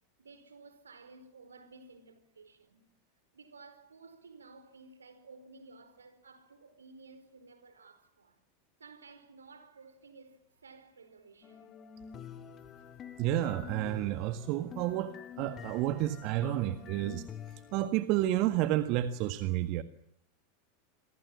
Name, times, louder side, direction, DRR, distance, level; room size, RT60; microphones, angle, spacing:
voice 1, 0.2-2.8 3.3-8.4 8.8-11.7, right 3 dB, 85° right, 4.6 m, -55 dB
sound 1, 11.4-17.9, left 9 dB, 35° left, 3.0 m, -47 dB
voice 2, 13.2-17.2 17.7-19.8, right 14 dB, 50° right, 1.7 m, -30 dB
28.0 x 24.5 x 7.4 m
figure-of-eight pair, 85°, 0 cm